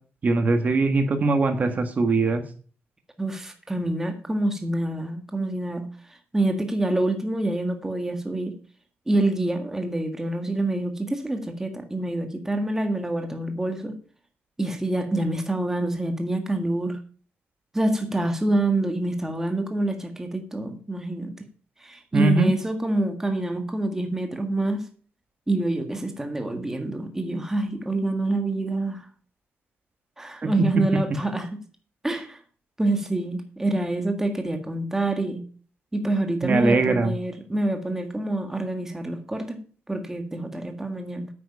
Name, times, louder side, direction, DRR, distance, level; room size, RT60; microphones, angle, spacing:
voice 1, 0.2-2.4 22.1-22.5 30.4-30.7 36.4-37.1, right 3 dB, 35° right, 1.5 m, -21 dB
voice 2, 3.2-5.9 6.3-8.5 9.1-14.0 14.6-17.0 17.7-21.3 21.8-24.9 25.5-29.1 30.2-31.6 32.0-32.4 32.8-35.4 35.9-41.3, right 2 dB, 10° right, 1.5 m, -26 dB
9.1 x 8.7 x 5.5 m
wide cardioid pair, 145°, 4 cm